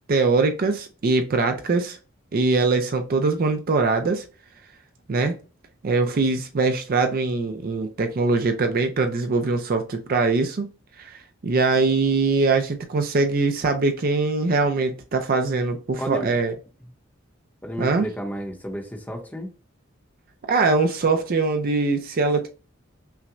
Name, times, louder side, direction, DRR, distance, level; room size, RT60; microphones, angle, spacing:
voice 1, 0.1-2.0 2.3-4.2 5.1-5.4 5.8-10.7 11.0-16.5 17.8-18.1 20.5-22.5, right 3 dB, 45° right, 0.4 m, -22 dB
voice 2, 16.0-16.3 17.6-19.5, equal, 10° left, 0.8 m, -32 dB
5.6 x 2.1 x 2.5 m
head